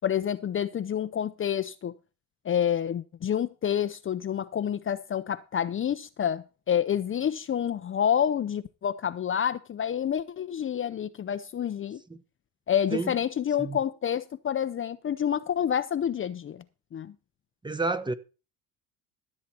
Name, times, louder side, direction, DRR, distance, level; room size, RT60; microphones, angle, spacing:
voice 1, 0.0-1.9 2.4-12.0 12.7-16.6 16.9-17.1, left 9 dB, 35° left, 0.6 m, -28 dB
voice 2, 17.6-18.1, right 3 dB, 10° right, 1.0 m, -29 dB
13.5 x 7.5 x 4.4 m
supercardioid pair, 90°, 38 cm